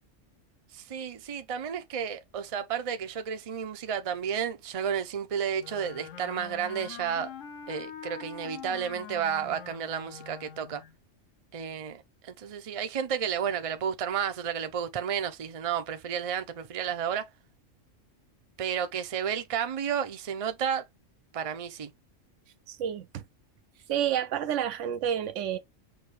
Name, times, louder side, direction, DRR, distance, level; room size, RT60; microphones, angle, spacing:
voice 1, 0.7-7.3 7.7-10.8 11.5-17.3 18.6-20.9 21.3-21.9, right 8 dB, 40° right, 0.5 m, -32 dB
Wind instrument woodwind instrument, 5.6-10.9, left 8 dB, 75° left, 1.0 m, -44 dB
voice 2, 22.7-23.2 23.9-25.6, right 9 dB, 75° right, 0.9 m, -29 dB
6.3 x 2.7 x 3.1 m
omnidirectional pair, 1.3 m